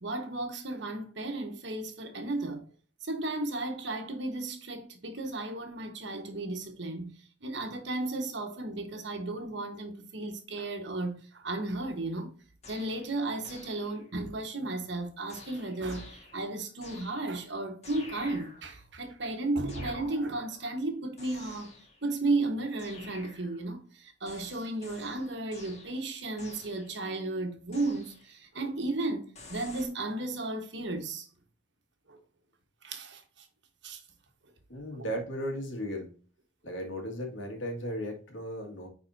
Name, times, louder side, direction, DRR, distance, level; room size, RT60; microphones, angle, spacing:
voice 1, 0.0-2.6 3.0-7.1 7.4-12.3 12.7-21.7 22.0-31.3 32.1-32.2 32.8-33.2 33.8-34.0 34.9-35.0, right 2 dB, 65° right, 1.3 m, -34 dB
sound 1, 12.6-14.2 15.3-17.5 17.8-18.9 19.7-20.7 21.2-22.2 22.8-23.8 24.3-27.1 27.7-28.4 29.4-29.9, left 2 dB, 35° left, 1.7 m, -50 dB
voice 2, 34.7-36.1 36.6-38.9, equal, 85° left, 2.0 m, -36 dB
9.7 x 4.2 x 2.7 m
head